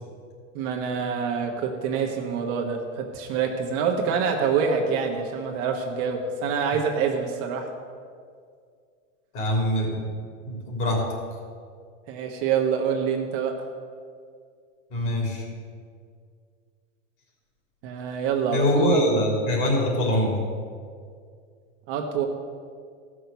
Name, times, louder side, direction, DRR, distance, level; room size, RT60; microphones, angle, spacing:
voice 1, 0.5-7.7 12.1-13.6 17.8-19.0 21.9-22.3, right 6 dB, 40° right, 1 dB, 1.2 m, -26 dB
voice 2, 9.3-10.1 10.4-11.0 14.9-15.4 18.5-20.3, left 1 dB, 35° left, -1 dB, 3.5 m, -24 dB
14.5 x 6.2 x 6.9 m, 2.1 s
supercardioid pair, 145°, 39 cm